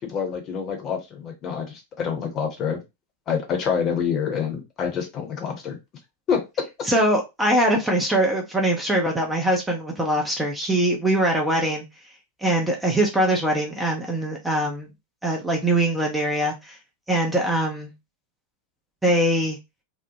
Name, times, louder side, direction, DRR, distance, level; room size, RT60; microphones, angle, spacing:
voice 1, 0.1-2.8 3.3-5.8 6.3-6.6, left 7 dB, 30° left, 3 dB, 0.9 m, -27 dB
voice 2, 6.8-11.8 12.4-14.9 15.2-16.8 17.1-17.9 19.0-19.6, right 1 dB, 5° right, 0 dB, 0.7 m, -22 dB
2.9 x 2.1 x 2.7 m, 0.23 s
figure-of-eight pair, 90°, 0 cm